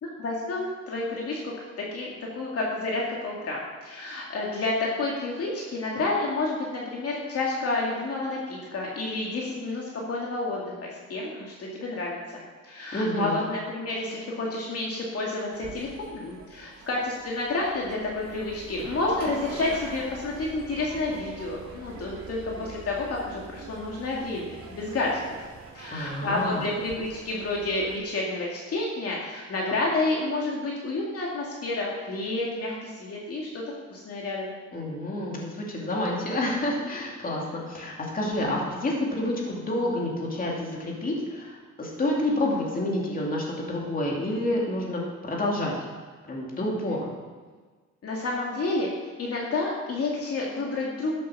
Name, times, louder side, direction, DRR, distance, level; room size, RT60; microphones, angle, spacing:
voice 1, 0.0-25.4 25.7-33.6 33.9-34.5 48.0-48.9 49.2-51.1, left 2 dB, 50° left, -3 dB, 2.3 m, -30 dB
voice 2, 12.9-13.4 25.9-26.6 34.7-45.9 46.2-47.1, left 1 dB, 30° left, -2 dB, 2.8 m, -29 dB
sound 1, 15.5-28.0, right 4 dB, 70° right, 3.2 m, -44 dB
12.5 x 8.3 x 6.2 m, 1.4 s
cardioid pair, 140°, 29 cm